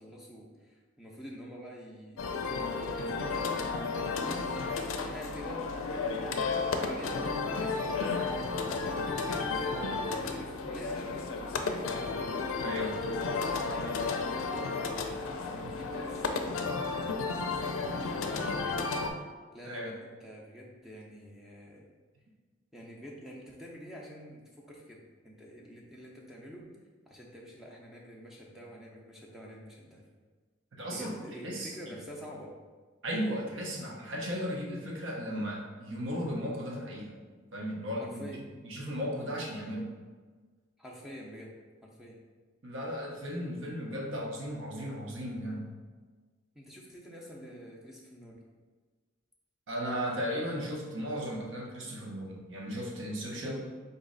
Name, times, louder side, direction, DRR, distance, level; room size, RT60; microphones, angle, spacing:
voice 1, 0.0-12.2 13.3-14.0 14.5-14.7 15.1-16.7 17.3-18.9 19.5-21.8 22.7-26.7 27.1-30.0 30.9-32.5 38.0-38.4 40.8-41.5 41.8-42.2 46.5-48.4 53.3-53.7, equal, ahead, -2 dB, 0.5 m, -47 dB
sound 1, 2.2-19.1, left 4 dB, 80° left, 0.4 m, -33 dB
voice 2, 12.6-13.0 19.6-19.9 30.8-31.1 31.4-31.7 33.0-37.1 37.5-38.3 38.6-39.9 42.6-45.7 49.7-53.6, equal, 70° right, -1 dB, 0.9 m, -35 dB
4.1 x 3.1 x 3.8 m, 1.4 s
head